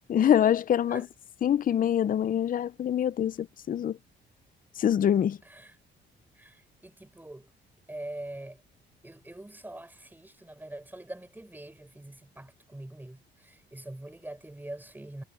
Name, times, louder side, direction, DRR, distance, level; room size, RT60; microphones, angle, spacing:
voice 1, 0.1-1.0 1.4-4.0 4.8-5.4, left 9 dB, 45° left, 0.5 m, -25 dB
voice 2, 5.4-5.8 6.3-7.5 7.9-8.6 9.0-15.2, right 1 dB, 10° right, 6.2 m, -43 dB
cardioid pair, 90°, 20 cm